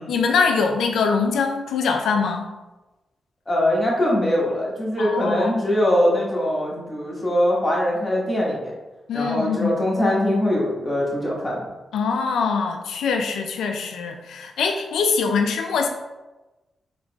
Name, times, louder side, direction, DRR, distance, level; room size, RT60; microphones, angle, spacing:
voice 1, 0.1-2.5 5.0-5.5 9.1-9.8 11.9-15.9, left 5 dB, 80° left, 4 dB, 0.4 m, -23 dB
voice 2, 3.5-8.7 9.1-11.6, left 1 dB, 30° left, -4 dB, 1.4 m, -22 dB
3.8 x 2.9 x 2.3 m, 1.1 s
supercardioid pair, 45°, 0 cm